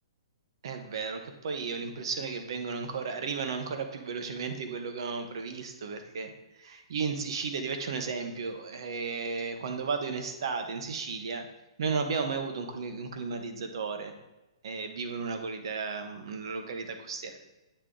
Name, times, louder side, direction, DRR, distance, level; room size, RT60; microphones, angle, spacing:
voice 1, 0.6-11.5 11.8-14.1 14.6-17.4, right 5 dB, 50° right, 6 dB, 0.9 m, -34 dB
8.8 x 3.6 x 3.7 m, 0.99 s
hypercardioid pair, 175°, 3 cm